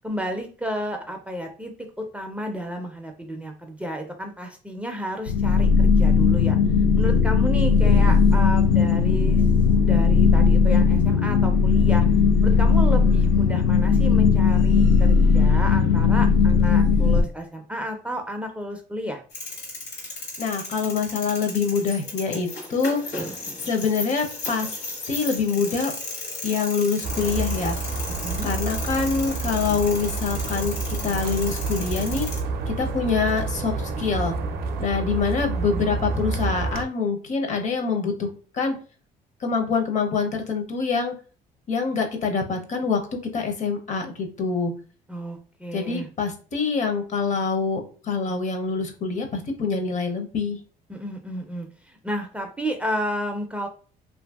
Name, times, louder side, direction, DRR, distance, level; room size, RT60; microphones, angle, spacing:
voice 1, 0.0-6.6 7.0-9.4 9.8-12.1 12.4-19.2 28.2-28.5 45.1-46.1 50.9-53.7, equal, 10° right, 3 dB, 0.4 m, -32 dB
sound 1, 5.3-17.2, left 5 dB, 90° left, 0.4 m, -18 dB
sound 2, 19.3-32.4, left 3 dB, 70° left, 1.1 m, -35 dB
voice 2, 20.4-23.2 23.6-24.7 25.1-25.9 26.4-27.8 28.4-32.3 32.7-34.3 34.8-38.7 39.4-41.1 41.7-43.0 43.3-44.7 45.7-50.6, left 5 dB, 45° left, 4 dB, 0.6 m, -25 dB
sound 3, 27.0-36.8, right 4 dB, 70° right, 0.5 m, -29 dB
2.7 x 2.5 x 2.2 m, 0.39 s
cardioid pair, 110°, 17 cm